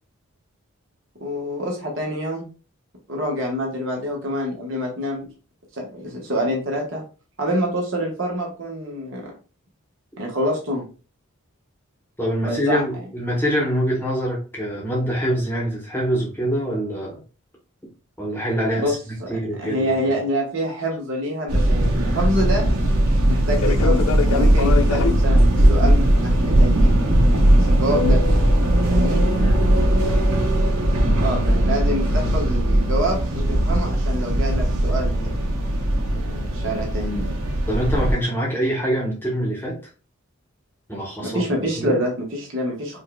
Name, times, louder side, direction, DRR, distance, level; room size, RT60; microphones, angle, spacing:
voice 1, 1.2-2.5 3.1-5.3 5.7-7.0 7.4-9.3 10.2-10.8 12.4-12.8 18.8-18.9 19.2-19.3 19.6-22.7 23.3-27.1 27.5-28.2 28.9-29.2 31.2-35.4 36.1-37.3 41.2-43.0, equal, 60° right, -1 dB, 1.2 m, -26 dB
voice 2, 12.2-17.2 18.2-20.0 29.3-29.7 37.7-39.8 40.9-41.5 41.7-42.0, equal, 10° left, -3 dB, 1.0 m, -25 dB
sound 1, 21.5-38.1, right 1 dB, 85° right, 0.9 m, -18 dB
Fixed-wing aircraft airplane, 23.5-29.9, left 6 dB, 75° left, 0.3 m, -29 dB
5.1 x 2.5 x 2.2 m, 0.36 s
head